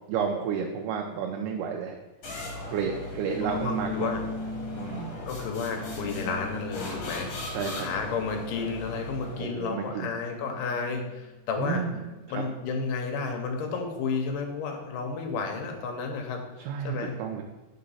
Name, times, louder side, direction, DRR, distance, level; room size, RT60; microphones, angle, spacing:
voice 1, 0.1-2.0 2.7-4.1 4.8-5.2 7.5-7.9 9.4-10.1 11.6-12.4 16.6-17.4, right 6 dB, 85° right, 2 dB, 2.1 m, -31 dB
sound 1, 2.2-9.6, left 2 dB, 55° left, 2.0 m, -38 dB
sound 2, 3.3-9.3 9.8-11.1, left 1 dB, ahead, 1.0 m, -40 dB
voice 2, 3.4-4.2 5.3-7.3 7.6-11.9 12.3-16.4 16.8-17.2, left 4 dB, 90° left, 3 dB, 2.4 m, -32 dB
5.2 x 3.8 x 5.5 m, 1.1 s
omnidirectional pair, 3.7 m